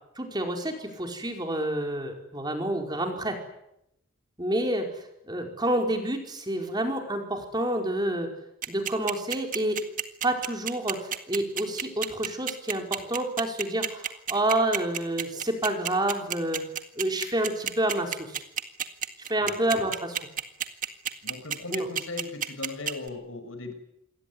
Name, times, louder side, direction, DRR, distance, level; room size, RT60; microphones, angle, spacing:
voice 1, 0.2-3.4 4.4-8.3 8.7-9.8 10.2-16.6 17.0-18.4 19.3-20.1 21.7-21.9, right 1 dB, 20° right, 3 dB, 5.0 m, -28 dB
sound 1, 8.6-23.1, right 9 dB, 35° right, 1.9 m, -30 dB
voice 2, 19.4-19.8 21.2-23.7, left 3 dB, 65° left, 7 dB, 6.0 m, -38 dB
28.0 x 22.0 x 9.7 m, 0.82 s
head